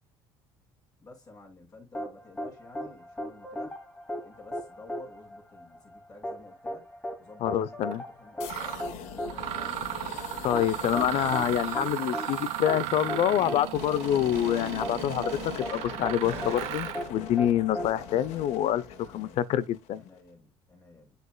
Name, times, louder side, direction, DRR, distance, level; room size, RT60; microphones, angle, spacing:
voice 1, 1.0-3.8 4.2-6.9 7.2-10.1 17.0-18.4 18.9-19.4 19.9-21.2, left 2 dB, 35° left, 5.5 m, -52 dB
sound 1, 1.9-18.8, equal, 10° left, 2.7 m, -38 dB
voice 2, 7.4-8.0 10.4-18.8 19.1-20.0, left 11 dB, 60° left, 0.8 m, -26 dB
Mechanisms, 7.8-8.0 8.5-8.8 9.3-17.1, right 13 dB, 70° right, 1.4 m, -35 dB
sound 2, 8.4-20.2, left 8 dB, 80° left, 1.2 m, -43 dB
8.1 x 7.9 x 2.4 m
supercardioid pair, 85°, 12 cm